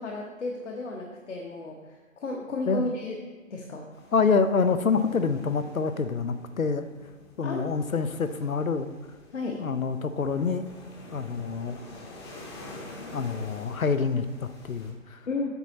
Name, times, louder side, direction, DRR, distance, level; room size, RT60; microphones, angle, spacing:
voice 1, 0.0-3.2 3.5-3.9 7.4-7.7 9.3-9.6 15.3-15.5, left 3 dB, 60° left, 0 dB, 1.1 m, -33 dB
sound 1, 3.9-14.9, left 2 dB, 20° left, 0.8 m, -47 dB
voice 2, 4.1-6.9 7.4-8.9 9.6-10.7 11.1-11.8 13.1-15.2, left 5 dB, 90° left, 10 dB, 0.7 m, -26 dB
8.2 x 5.7 x 4.0 m, 1.4 s
figure-of-eight pair, 140°, 40 cm